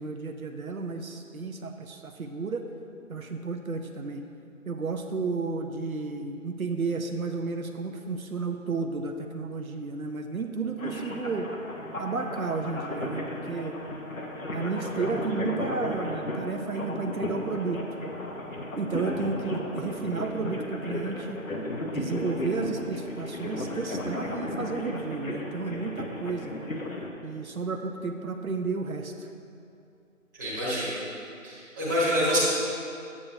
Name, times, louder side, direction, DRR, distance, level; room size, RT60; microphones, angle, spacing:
voice 1, 0.0-2.7 3.1-4.2 4.7-11.5 12.0-13.8 14.5-18.0 18.7-21.4 21.9-26.5 27.2-29.3, right 4 dB, 85° right, 5 dB, 0.8 m, -32 dB
sound 1, 10.8-27.1, left 1 dB, 75° left, 1.3 m, -34 dB
voice 2, 30.3-31.0 31.4-32.4, equal, 15° right, -11 dB, 1.4 m, -27 dB
9.4 x 8.5 x 2.7 m, 2.6 s
figure-of-eight pair, 165°, 41 cm